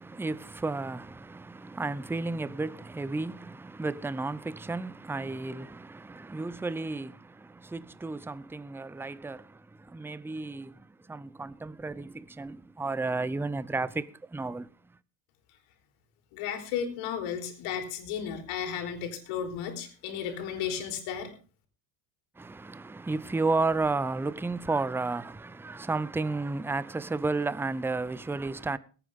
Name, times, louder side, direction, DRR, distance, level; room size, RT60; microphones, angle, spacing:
voice 1, 0.0-14.7 22.4-28.8, right 3 dB, 5° right, 0.5 m, -33 dB
voice 2, 16.3-21.3, left 8 dB, 75° left, 3.7 m, -34 dB
21.5 x 8.9 x 3.6 m
supercardioid pair, 95°, 50 cm